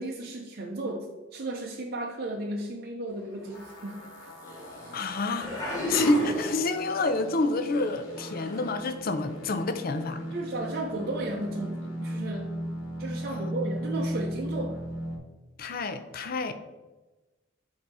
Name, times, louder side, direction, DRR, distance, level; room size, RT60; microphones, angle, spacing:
voice 1, 0.0-4.3 10.3-12.6 13.0-14.8, right 2 dB, 55° right, 0 dB, 0.6 m, -34 dB
sound 1, 3.5-15.2, equal, 75° left, 1.2 m, -37 dB
sound 2, 3.5-3.7 4.4-5.0 5.4-7.0 7.4-7.6 8.0-8.7 9.4-9.5, equal, 20° left, 1.9 m, -32 dB
voice 2, 4.9-5.5 5.9-10.2 15.6-16.5, left 3 dB, 55° left, 9 dB, 0.5 m, -28 dB
7.4 x 2.8 x 4.8 m, 1.1 s
head